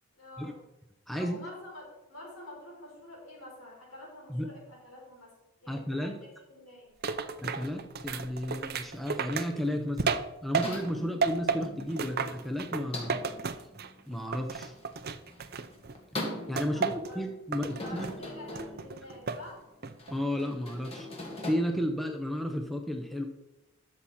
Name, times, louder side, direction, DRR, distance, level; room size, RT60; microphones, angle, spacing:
voice 1, 0.1-0.6 1.1-6.9 11.1-11.2 16.6-17.2 17.7-19.7, left 1 dB, 70° left, -2 dB, 4.4 m, -48 dB
voice 2, 1.1-1.4 4.3-4.5 5.7-6.1 7.4-13.2 14.1-14.7 16.1-16.2 16.5-18.1 20.1-21.1 21.5-23.3, equal, ahead, 3 dB, 0.8 m, -33 dB
sound 1, 7.0-10.9 11.2-14.0 14.3-16.0 16.6-17.1 17.5-18.2 18.6-19.5 19.8-20.2, right 5 dB, 45° right, 0.6 m, -33 dB
sound 2, 10.6-21.5, left 1 dB, 25° left, 1.9 m, -43 dB
12.5 x 7.2 x 4.3 m, 0.95 s
head